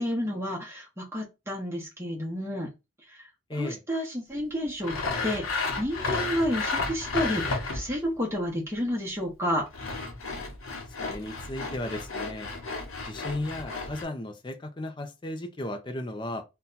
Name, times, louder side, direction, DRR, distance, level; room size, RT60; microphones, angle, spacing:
voice 1, 0.0-2.7 3.1-9.6, equal, 10° right, 0.9 m, -31 dB
Sawing, 4.8-8.0 9.5-14.0, left 3 dB, 85° left, 0.8 m, -32 dB
voice 2, 11.0-12.5 13.0-16.4, left 1 dB, 25° left, 0.4 m, -35 dB
2.8 x 2.2 x 3.8 m
head